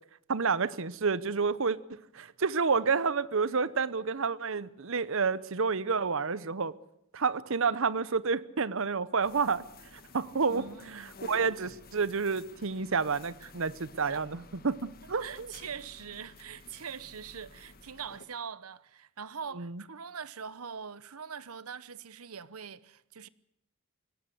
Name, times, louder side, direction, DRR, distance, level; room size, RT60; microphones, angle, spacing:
voice 1, 0.3-6.7 7.1-9.6 9.9-15.5 19.6-19.8, right 5 dB, 65° right, 0.9 m, -30 dB
sound 1, 9.2-18.3, left 4 dB, 45° left, 1.5 m, -53 dB
voice 2, 10.5-11.1 13.4-13.5 14.1-14.2 15.2-23.3, right 6 dB, 90° right, 1.0 m, -43 dB
22.0 x 18.0 x 8.2 m
head